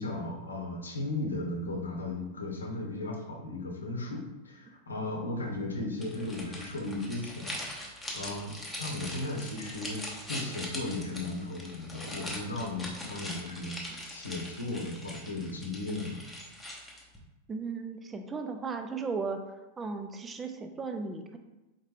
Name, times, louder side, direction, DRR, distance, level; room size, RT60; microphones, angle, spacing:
voice 1, 0.0-16.2, left 2 dB, 75° left, 1 dB, 0.9 m, -36 dB
sound 1, 6.0-17.2, left 1 dB, 5° left, 0.9 m, -42 dB
voice 2, 17.5-19.4 19.8-21.4, right 4 dB, 20° right, 6 dB, 0.5 m, -36 dB
4.4 x 3.6 x 3.4 m, 1.0 s
figure-of-eight pair, 90°, 0 cm